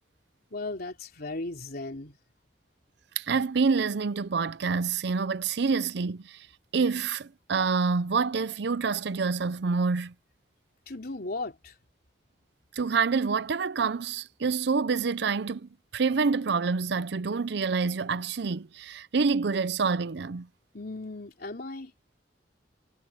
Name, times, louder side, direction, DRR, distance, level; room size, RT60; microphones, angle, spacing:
voice 1, 0.5-2.2 10.9-11.8 20.7-21.9, left 2 dB, 60° left, 3.4 m, -36 dB
voice 2, 3.2-6.5 6.7-10.1 12.8-20.5, right 5 dB, 70° right, 0.6 m, -27 dB
head